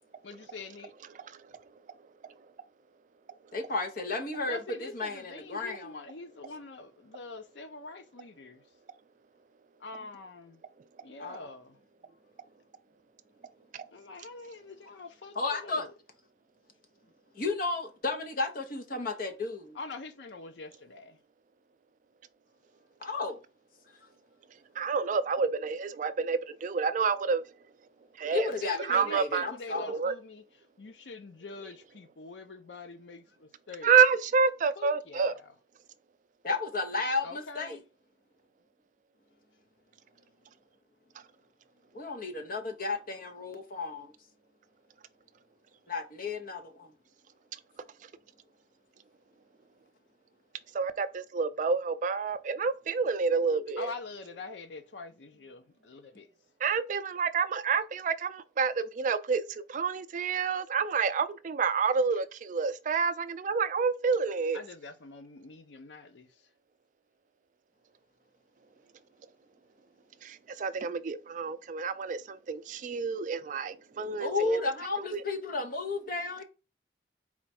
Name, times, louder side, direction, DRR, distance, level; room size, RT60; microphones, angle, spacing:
voice 1, 0.2-0.9 4.4-8.6 9.8-10.6 11.0-11.8 13.9-15.9 19.7-21.2 28.5-30.4 30.8-33.9 34.8-35.5 37.2-37.8 53.8-56.3 64.5-66.3, left 3 dB, 85° left, 0.6 m, -45 dB
voice 2, 3.5-5.9 11.2-11.5 15.3-15.9 17.3-19.8 23.0-23.4 28.3-30.0 36.4-37.8 41.9-44.1 45.9-46.9 74.2-76.4, left 3 dB, 50° left, 0.8 m, -33 dB
voice 3, 24.8-27.5 28.2-28.5 28.8-29.5 29.9-30.1 33.8-35.3 50.7-53.9 56.6-64.6 70.2-74.6 75.1-75.2, right 5 dB, 45° right, 0.3 m, -28 dB
4.3 x 2.3 x 4.1 m
head